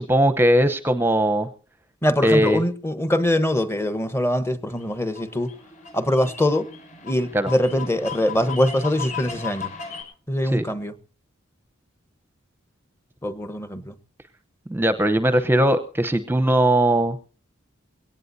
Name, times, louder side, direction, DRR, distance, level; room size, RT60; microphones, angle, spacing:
voice 1, 0.0-1.5 2.2-2.6 7.3-7.5 10.4-10.7 14.7-17.2, right 1 dB, 10° right, 0.8 m, -19 dB
voice 2, 2.0-5.5 5.9-6.7 7.0-9.7 10.3-10.9 13.2-13.9, left 1 dB, 15° left, 1.1 m, -23 dB
sound 1, 4.7-10.0, left 6 dB, 40° left, 6.8 m, -37 dB
22.0 x 17.5 x 2.7 m
head